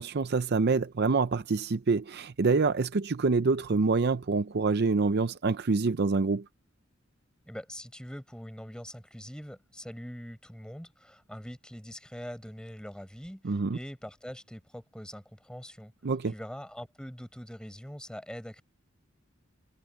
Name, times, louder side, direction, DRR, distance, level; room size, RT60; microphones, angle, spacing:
voice 1, 0.0-6.4 13.4-13.8 16.0-16.3, right 4 dB, 50° right, 0.6 m, -26 dB
voice 2, 7.5-15.9 16.3-18.6, equal, 5° left, 5.7 m, -43 dB
head